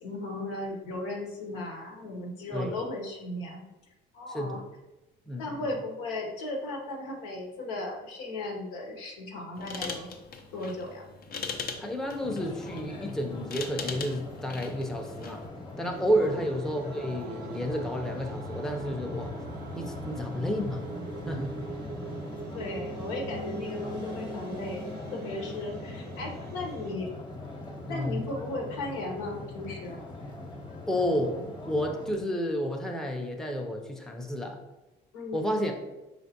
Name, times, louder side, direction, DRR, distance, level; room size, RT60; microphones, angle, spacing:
voice 1, 0.0-3.6 4.1-4.6 5.4-10.1 10.5-11.0 22.5-27.1 27.9-30.0 35.1-35.6, left 2 dB, 80° left, 1 dB, 0.9 m, -36 dB
voice 2, 4.3-4.6 5.3-5.7 11.8-15.5 15.8-19.4 19.8-20.9 21.3-21.5 27.9-28.3 30.9-34.6 35.3-35.7, equal, ahead, 2 dB, 0.6 m, -31 dB
sound 1, 9.6-15.5, left 5 dB, 45° left, 0.6 m, -40 dB
sound 2, 12.2-32.1, left 2 dB, 20° left, 1.0 m, -41 dB
sound 3, 15.9-26.9, right 5 dB, 50° right, 0.5 m, -43 dB
4.5 x 3.3 x 2.8 m, 1.0 s
supercardioid pair, 70°, 21 cm